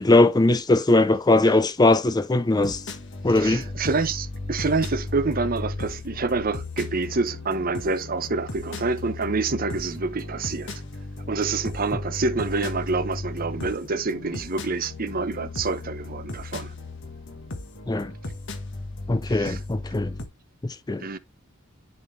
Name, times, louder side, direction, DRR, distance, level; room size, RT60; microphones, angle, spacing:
voice 1, 0.0-2.9 3.2-3.7 17.9-18.1 19.1-20.2 20.6-21.0, left 2 dB, 20° left, 0.5 m, -20 dB
sound 1, 2.6-20.3, left 2 dB, 55° left, 1.5 m, -35 dB
voice 2, 3.3-10.8 11.3-16.7 19.3-19.6 21.0-21.2, right 3 dB, 40° right, 0.8 m, -27 dB
10.5 x 4.2 x 3.2 m
head